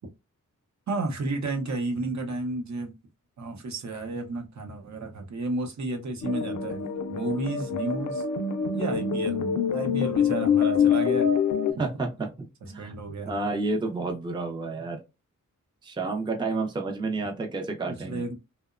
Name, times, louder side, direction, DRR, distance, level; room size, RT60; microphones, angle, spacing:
voice 1, 0.9-2.9 3.4-6.8 7.1-8.2 8.7-11.3 12.8-13.3 18.0-18.3, right 2 dB, 60° right, 0.6 m, -32 dB
sound 1, 6.2-11.7, left 7 dB, 70° left, 0.5 m, -25 dB
voice 2, 11.8-12.9 13.3-15.0 15.8-18.2, right 3 dB, 15° right, 0.4 m, -30 dB
2.8 x 2.1 x 2.3 m
wide cardioid pair, 180°, 31 cm